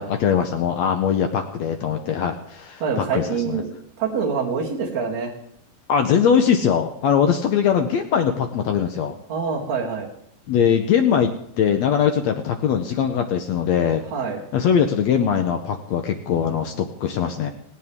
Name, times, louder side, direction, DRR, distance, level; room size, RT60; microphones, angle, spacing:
voice 1, 0.0-3.6 5.9-9.1 10.5-14.0 14.5-17.5, left 7 dB, 80° left, 6 dB, 1.6 m, -21 dB
voice 2, 2.8-3.7 4.0-5.3 9.3-10.1 14.1-14.4, right 5 dB, 50° right, -3 dB, 4.0 m, -25 dB
18.0 x 17.5 x 3.6 m, 0.66 s
omnidirectional pair, 4.2 m